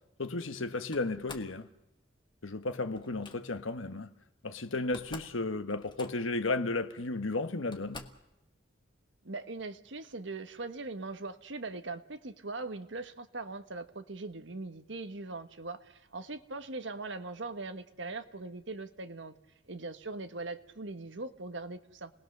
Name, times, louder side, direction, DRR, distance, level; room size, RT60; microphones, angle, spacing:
voice 1, 0.2-1.7 2.4-4.1 4.4-8.1, left 2 dB, 85° left, 1.3 m, -34 dB
Slam, 0.9-1.6 3.0-3.4 4.5-4.6 4.8-5.4 5.7-6.4 7.2-7.3 7.7-8.3, left 3 dB, 25° left, 1.4 m, -48 dB
voice 2, 9.2-19.3 19.7-22.1, right 3 dB, 70° right, 1.4 m, -41 dB
29.5 x 20.0 x 6.7 m
head